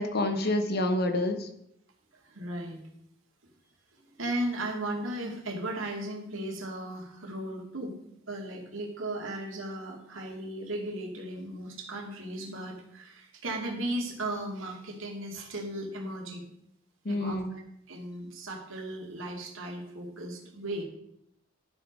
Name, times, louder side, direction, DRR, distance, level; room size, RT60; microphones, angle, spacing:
voice 1, 0.0-1.5 17.0-17.6, left 1 dB, 55° left, 7 dB, 1.2 m, -28 dB
voice 2, 2.1-2.8 4.2-7.9 8.3-16.4 17.1-17.6 17.9-20.8, right 1 dB, 90° right, 0 dB, 2.4 m, -36 dB
12.0 x 5.6 x 5.3 m, 0.75 s
head